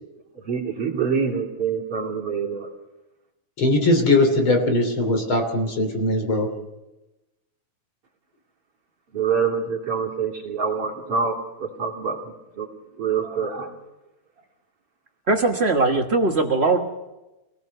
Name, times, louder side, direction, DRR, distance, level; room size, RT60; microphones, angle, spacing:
voice 1, 0.4-2.7 9.1-12.7 13.0-13.7, right 6 dB, 45° right, -1 dB, 4.1 m, -26 dB
voice 2, 3.6-6.5, left 2 dB, 40° left, 5 dB, 3.9 m, -20 dB
voice 3, 15.3-16.8, right 3 dB, 65° right, 3 dB, 0.6 m, -20 dB
25.0 x 18.0 x 6.8 m, 1.0 s
omnidirectional pair, 3.5 m